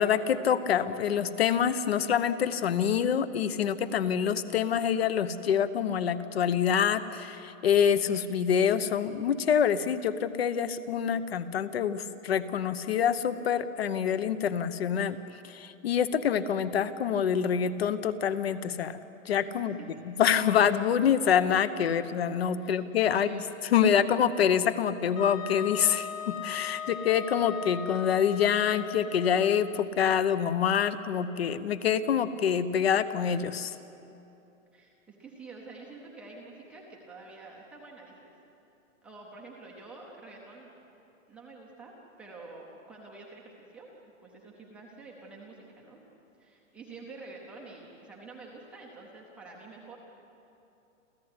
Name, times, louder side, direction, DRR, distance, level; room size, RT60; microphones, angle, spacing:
voice 1, 0.0-15.2 15.4-19.0 19.2-19.8 20.1-33.7, left 8 dB, 50° left, 13 dB, 0.9 m, -26 dB
voice 2, 19.5-20.0 22.6-22.8 23.1-23.5 34.7-38.3 39.0-40.7 41.3-43.9 44.2-46.0 46.4-50.0, right 3 dB, 5° right, -3 dB, 0.7 m, -48 dB
Wind instrument woodwind instrument, 25.2-29.8, left 6 dB, 80° left, 3.0 m, -39 dB
28.5 x 14.5 x 9.6 m, 2.9 s
hypercardioid pair, 175°, 40 cm